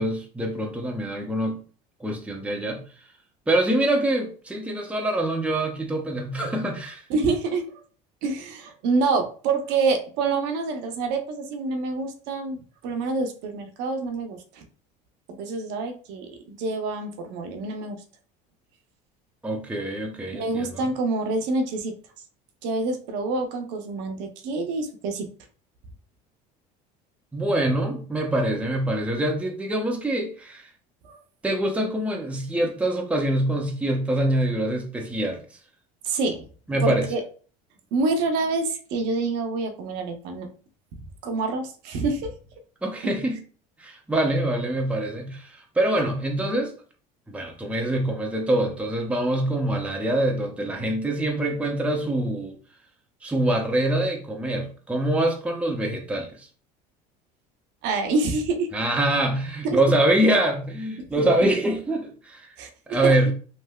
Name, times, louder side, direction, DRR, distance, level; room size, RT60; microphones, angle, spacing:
voice 1, 0.0-1.6 2.0-2.8 3.5-7.0 19.4-20.9 27.3-30.6 31.4-35.4 36.7-37.1 42.8-43.4 43.8-46.7 47.3-52.6 53.2-56.5 58.7-62.5 62.9-63.3, right 1 dB, 5° right, 1 dB, 0.6 m, -25 dB
voice 2, 7.1-7.6 8.2-14.6 15.3-18.0 20.3-21.9 22.6-25.3 31.0-31.2 36.0-36.5 36.8-37.2 37.9-40.5 41.2-42.3 57.8-58.7 59.6-59.8 62.6-63.1, right 3 dB, 70° right, 4 dB, 0.7 m, -27 dB
3.1 x 2.6 x 2.3 m, 0.40 s
supercardioid pair, 110°, 19 cm